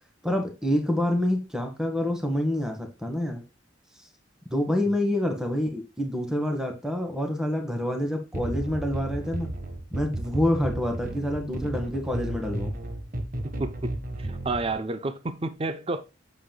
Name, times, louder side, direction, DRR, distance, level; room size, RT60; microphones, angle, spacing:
voice 1, 0.2-3.4 4.5-9.5 9.9-12.8, left 1 dB, 5° right, 1.8 m, -27 dB
sound 1, 8.3-14.7, right 1 dB, 50° right, 1.5 m, -34 dB
voice 2, 13.4-13.9 14.2-16.0, right 2 dB, 30° right, 0.7 m, -30 dB
8.3 x 7.9 x 2.3 m
head